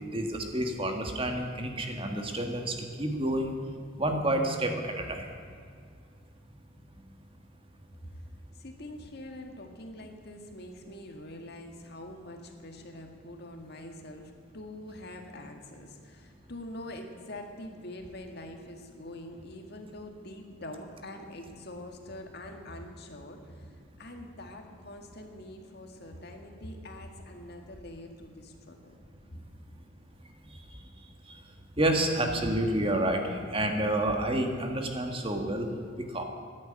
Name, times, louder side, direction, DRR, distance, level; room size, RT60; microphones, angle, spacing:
voice 1, 0.1-3.5 4.0-5.3 31.3-31.4 31.8-35.7 36.0-36.2, right 1 dB, 25° right, 4 dB, 1.6 m, -29 dB
voice 2, 8.5-28.9, left 1 dB, 55° left, 4 dB, 1.9 m, -44 dB
15.0 x 11.0 x 8.9 m, 2.2 s
head